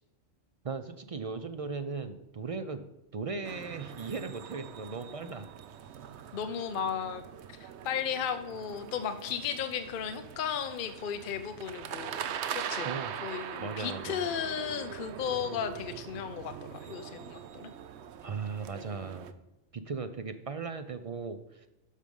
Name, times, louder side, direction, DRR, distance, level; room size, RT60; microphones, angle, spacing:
voice 1, 0.6-2.8 3.1-5.5 12.8-13.1 13.6-14.2 18.2-19.3 19.7-21.7, right 4 dB, 55° right, 9 dB, 0.4 m, -37 dB
sound 1, 3.4-19.3, right 9 dB, 70° right, 0.9 m, -42 dB
voice 2, 6.3-7.2 7.6-12.9 13.2-16.5 16.8-17.7, left 8 dB, 50° left, 8 dB, 0.8 m, -35 dB
12.0 x 5.0 x 5.3 m, 0.91 s
omnidirectional pair, 1.3 m